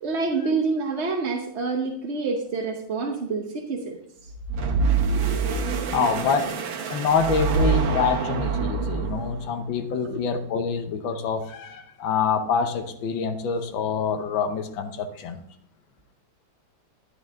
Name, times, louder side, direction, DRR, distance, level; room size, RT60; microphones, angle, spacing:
voice 1, 0.0-4.0 10.0-10.2, right 4 dB, 45° right, 2 dB, 0.9 m, -27 dB
sound 1, 4.3-9.5, right 5 dB, 75° right, 1.8 m, -25 dB
voice 2, 5.9-6.5 6.9-15.4, left 6 dB, 75° left, 7 dB, 1.7 m, -26 dB
11.0 x 9.3 x 3.6 m, 0.73 s
omnidirectional pair, 2.1 m